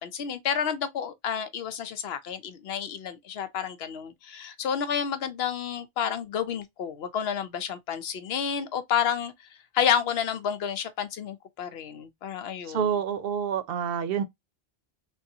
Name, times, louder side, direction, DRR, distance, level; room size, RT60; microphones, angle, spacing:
voice 1, 0.0-9.5 9.7-12.9, left 8 dB, 80° left, 0.9 m, -30 dB
voice 2, 12.6-14.2, right 7 dB, 70° right, 0.8 m, -28 dB
3.5 x 2.3 x 2.6 m
omnidirectional pair, 1.1 m